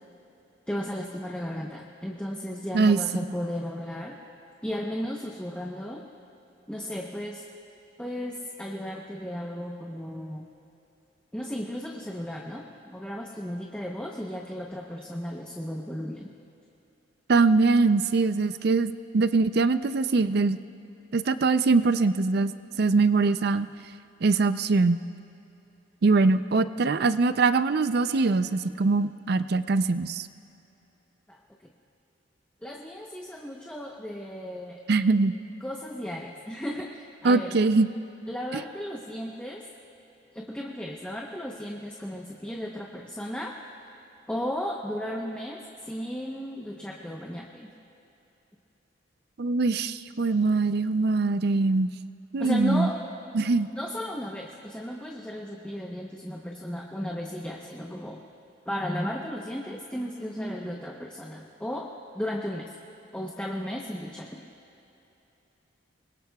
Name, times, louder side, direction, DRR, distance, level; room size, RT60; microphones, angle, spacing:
voice 1, 0.7-4.2 4.6-6.0 6.7-7.4 8.0-10.5 11.3-16.3 31.3-31.4 32.6-34.8 35.6-37.6 38.3-39.6 40.3-43.6 44.3-47.7 52.4-53.0 53.7-58.2 58.7-61.9 62.1-62.7 63.1-64.4, equal, 5° left, -1 dB, 0.8 m, -35 dB
voice 2, 17.3-20.6 21.1-22.5 22.8-23.7 24.2-25.0 26.0-30.3 34.9-35.3 37.2-37.9 38.5-38.6 49.4-51.9 52.3-52.9 53.3-53.7, right 3 dB, 55° right, 12 dB, 0.5 m, -22 dB
25.5 x 21.5 x 2.3 m, 2.9 s
head